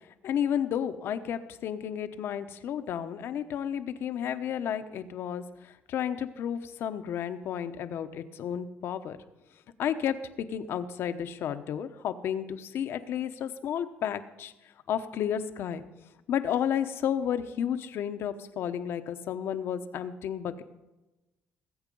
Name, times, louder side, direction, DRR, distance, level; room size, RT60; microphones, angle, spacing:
voice 1, 0.2-9.2 9.8-14.5 14.9-15.8 16.3-20.6, left 9 dB, 70° left, 10 dB, 1.0 m, -32 dB
19.0 x 8.1 x 5.4 m, 1.0 s
cardioid pair, 110°, 4 cm